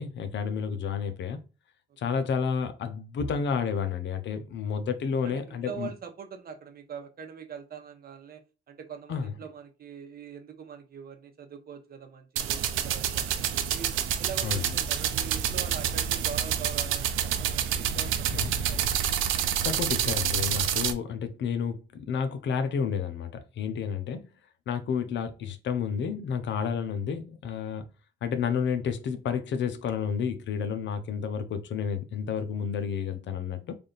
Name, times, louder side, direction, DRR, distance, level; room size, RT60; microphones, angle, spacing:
voice 1, 0.0-1.4 2.0-5.9 9.1-9.3 14.4-14.7 18.3-18.5 19.6-23.3 23.6-24.3 24.7-27.8 28.2-33.7, left 6 dB, 65° left, 0.7 m, -30 dB
voice 2, 5.2-8.4 8.7-13.9 14.2-19.2, right 7 dB, 50° right, 0.9 m, -43 dB
sound 1, 12.4-20.9, right 10 dB, 85° right, 0.5 m, -28 dB
3.4 x 2.5 x 3.9 m
cardioid pair, 90°, 20 cm